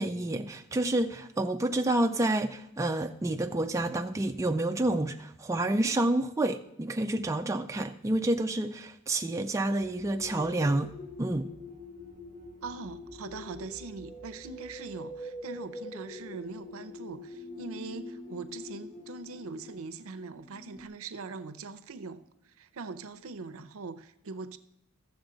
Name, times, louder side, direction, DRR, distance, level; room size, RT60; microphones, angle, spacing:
voice 1, 0.0-10.9 11.2-11.5, right 1 dB, 15° right, 5 dB, 0.3 m, -29 dB
sound 1, 9.8-20.9, left 2 dB, 30° left, 2.1 m, -44 dB
voice 2, 12.6-22.2 22.6-24.6, right 4 dB, 65° right, 10 dB, 0.6 m, -41 dB
13.5 x 7.0 x 3.9 m, 0.80 s
head